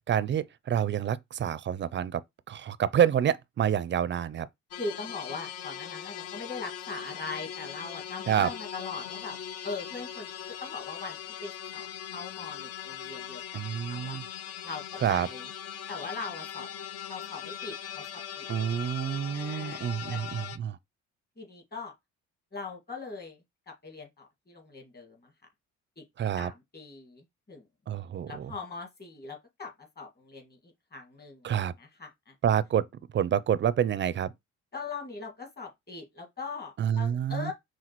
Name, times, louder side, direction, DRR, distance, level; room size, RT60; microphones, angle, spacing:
voice 1, 0.1-2.2 2.5-4.5 8.3-8.5 13.5-14.2 15.0-15.3 18.5-20.8 26.2-26.5 27.9-28.5 31.4-31.7 32.4-32.8 33.1-34.3 36.8-37.5, right 9 dB, 40° right, 0.4 m, -28 dB
sound 1, 4.7-20.6, left 9 dB, 55° left, 0.5 m, -40 dB
voice 2, 4.7-9.4 9.6-10.3 10.6-13.4 13.9-14.2 14.6-14.8 15.1-15.5 15.9-16.7 17.1-18.5 19.3-20.2 21.4-21.9 22.5-25.3 26.0-26.1 26.4-27.6 28.3-32.3 34.7-37.5, left 4 dB, 30° left, 1.9 m, -41 dB
5.8 x 2.4 x 3.0 m
cardioid pair, 90°, 30 cm